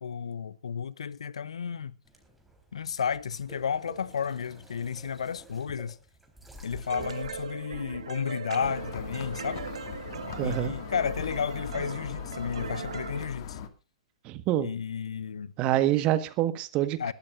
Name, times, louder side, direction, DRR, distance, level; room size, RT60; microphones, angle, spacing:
voice 1, 0.0-1.9 2.7-6.0 6.6-9.6 10.4-13.6 14.6-15.5 17.0-17.1, left 7 dB, 75° left, 0.8 m, -32 dB
sound 1, 2.0-8.2, right 1 dB, ahead, 3.9 m, -50 dB
sound 2, 6.9-13.3, right 7 dB, 70° right, 1.5 m, -39 dB
sound 3, 8.6-13.7, left 8 dB, 50° left, 2.0 m, -40 dB
voice 2, 10.4-10.7 14.2-14.7 15.6-17.1, right 13 dB, 35° right, 1.5 m, -26 dB
22.0 x 13.0 x 2.5 m
hypercardioid pair, 115°, 3 cm